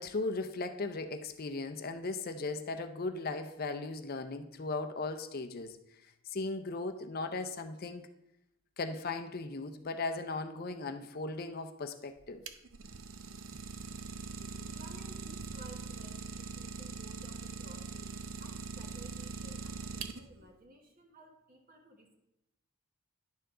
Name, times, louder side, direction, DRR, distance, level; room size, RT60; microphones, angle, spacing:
voice 1, 0.0-5.8 6.3-8.1 8.8-12.4, left 3 dB, 45° left, 8 dB, 0.6 m, -37 dB
Idling, 12.2-20.5, right 5 dB, 65° right, 0.6 m, -42 dB
voice 2, 14.7-22.2, right 1 dB, 40° right, 2 dB, 1.4 m, -56 dB
10.5 x 6.8 x 3.8 m, 0.87 s
head